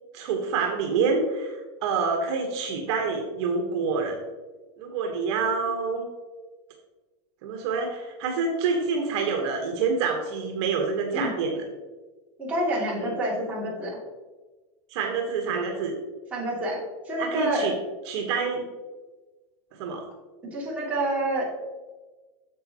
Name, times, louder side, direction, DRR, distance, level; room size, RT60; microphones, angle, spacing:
voice 1, 0.1-4.2 4.8-6.0 7.4-11.6 13.0-13.1 14.9-15.9 17.2-17.7 18.1-18.6 19.8-20.1, right 5 dB, 55° right, 2 dB, 1.3 m, -27 dB
voice 2, 12.4-14.0 16.3-16.8 17.0-17.7 20.5-21.4, right 1 dB, 10° right, -7 dB, 2.6 m, -27 dB
8.8 x 7.0 x 2.9 m, 1.3 s
supercardioid pair, 160°, 17 cm